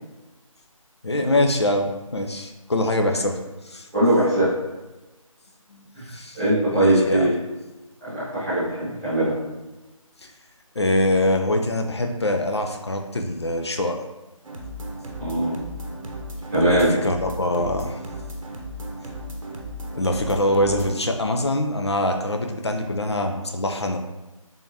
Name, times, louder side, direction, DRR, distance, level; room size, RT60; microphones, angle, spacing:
voice 1, 1.0-3.9 5.7-5.9 6.1-6.4 6.7-7.3 10.2-10.3 10.8-14.0 16.5-18.0 20.0-24.0, left 1 dB, 50° left, 4 dB, 0.4 m, -24 dB
voice 2, 3.9-4.5 5.9-6.1 6.3-7.4 8.0-9.3 15.2-15.6 16.5-16.9, right 1 dB, 5° right, -20 dB, 1.1 m, -21 dB
sound 1, 14.4-20.9, equal, 70° right, 0.7 m, -35 dB
3.5 x 3.4 x 2.7 m, 1.1 s
figure-of-eight pair, 175°, 18 cm